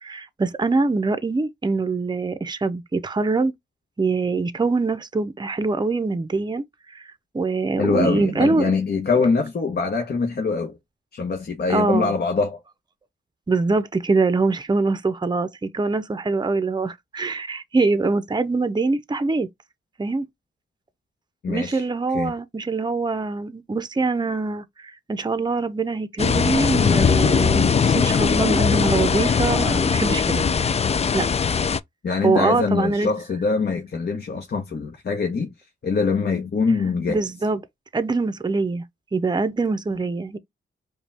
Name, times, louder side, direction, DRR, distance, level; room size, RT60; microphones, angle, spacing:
voice 1, 0.0-3.5 4.0-7.1 7.3-8.7 11.7-12.1 13.5-19.5 20.0-20.3 21.5-30.4 31.1-31.3 32.2-33.1 37.1-37.6 37.9-38.8 39.1-40.4, right 3 dB, 20° right, 0.7 m, -23 dB
voice 2, 7.8-10.8 11.1-12.6 21.4-21.8 22.1-22.3 28.1-28.2 32.0-35.5 35.8-37.2, left 4 dB, 55° left, 1.1 m, -23 dB
sound 1, 26.2-31.8, left 6 dB, 35° left, 0.4 m, -20 dB
5.0 x 2.3 x 3.4 m
cardioid pair, 70°, 20 cm